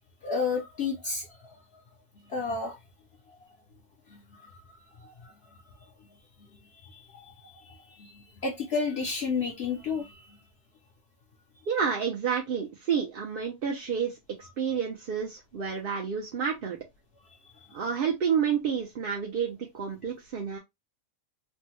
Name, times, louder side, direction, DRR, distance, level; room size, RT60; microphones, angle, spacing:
voice 1, 0.2-1.6 2.3-2.8 4.1-5.6 6.9-7.3 7.6-10.4, left 4 dB, 60° left, 0.8 m, -32 dB
voice 2, 11.7-14.2 14.6-16.8 17.7-20.6, right 7 dB, 55° right, 0.7 m, -29 dB
3.3 x 2.1 x 2.9 m
omnidirectional pair, 1.4 m